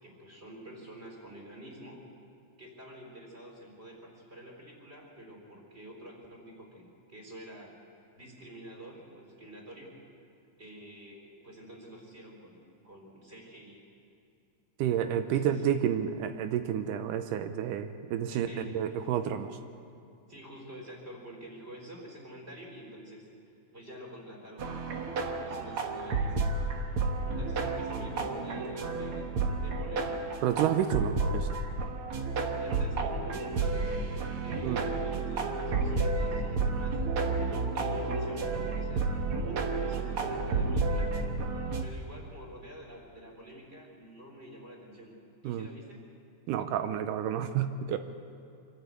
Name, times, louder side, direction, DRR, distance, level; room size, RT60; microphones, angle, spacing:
voice 1, 0.0-2.1 2.6-7.8 8.2-10.0 10.6-13.9 14.9-15.6 18.3-18.8 20.3-23.3 23.7-24.8 25.2-26.5 26.9-30.4 32.4-37.0 37.7-39.1 39.4-41.1 41.8-45.2 45.4-46.0, right 1 dB, 20° right, 0 dB, 3.9 m, -48 dB
voice 2, 14.8-19.6 30.4-31.6 34.6-34.8 45.5-45.7 46.5-48.0, right 9 dB, 85° right, 9 dB, 2.3 m, -30 dB
sound 1, 24.6-41.8, right 3 dB, 55° right, 1.8 m, -31 dB
25.0 x 13.5 x 8.3 m, 2.6 s
omnidirectional pair, 3.7 m